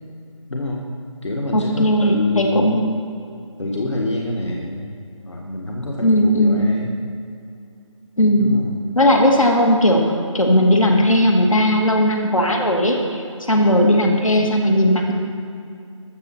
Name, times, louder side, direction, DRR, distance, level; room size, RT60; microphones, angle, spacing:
voice 1, 0.5-0.9 1.2-2.8 3.6-5.0 5.2-6.9 8.4-8.7, left 1 dB, 60° left, -1 dB, 1.9 m, -27 dB
voice 2, 1.5-2.9 6.0-6.7 8.2-8.6 9.0-15.1, left 1 dB, 85° left, 1 dB, 2.4 m, -17 dB
20.5 x 7.4 x 4.5 m, 2.5 s
figure-of-eight pair, 165°, 17 cm